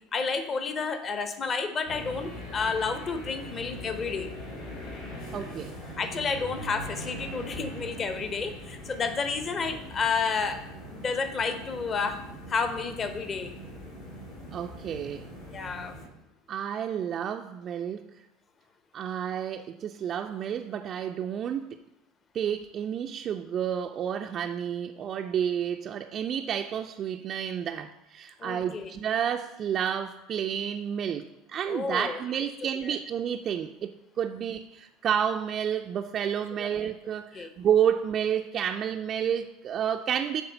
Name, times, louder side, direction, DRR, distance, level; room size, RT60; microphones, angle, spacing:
voice 1, 0.1-4.3 6.0-10.6 10.9-12.2 12.5-13.5 15.5-15.9 28.4-28.9 31.7-32.2 32.8-33.0 36.6-36.7 37.3-37.5, left 5 dB, 30° left, 9 dB, 0.8 m, -30 dB
sound 1, 1.9-16.1, equal, 60° left, 3.0 m, -41 dB
voice 2, 5.3-5.7 14.5-15.3 16.5-18.1 18.9-21.8 22.3-33.9 34.2-40.4, right 8 dB, 40° right, 4 dB, 0.3 m, -30 dB
9.4 x 3.7 x 5.4 m, 0.89 s
figure-of-eight pair, 70°, 0 cm